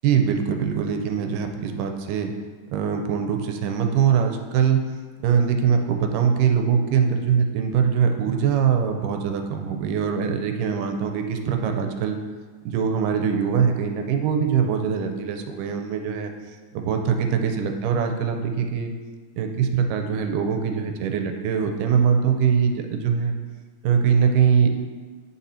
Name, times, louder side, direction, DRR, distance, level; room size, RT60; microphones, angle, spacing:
voice 1, 0.0-2.3 2.7-4.8 5.2-12.2 12.6-16.3 16.7-18.9 19.4-23.4 23.8-24.7, right 7 dB, 85° right, 5 dB, 2.2 m, -22 dB
8.2 x 4.0 x 4.2 m, 1.5 s
omnidirectional pair, 3.7 m